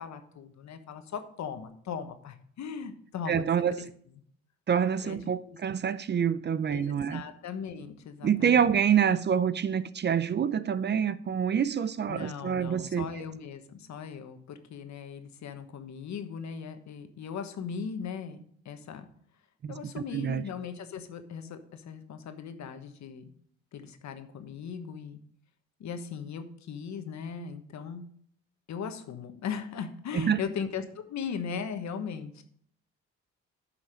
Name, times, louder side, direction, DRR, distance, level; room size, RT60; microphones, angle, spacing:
voice 1, 0.0-3.9 5.0-5.6 6.7-8.7 12.1-19.1 19.7-23.2 23.7-25.2 25.8-28.1 28.7-32.4, left 6 dB, 65° left, 1.2 m, -38 dB
voice 2, 3.3-3.7 4.7-7.2 8.2-13.0 19.6-19.7 20.1-20.4 30.1-30.4, right 8 dB, 35° right, 0.5 m, -26 dB
9.9 x 5.8 x 5.1 m
cardioid pair, 90°, 30 cm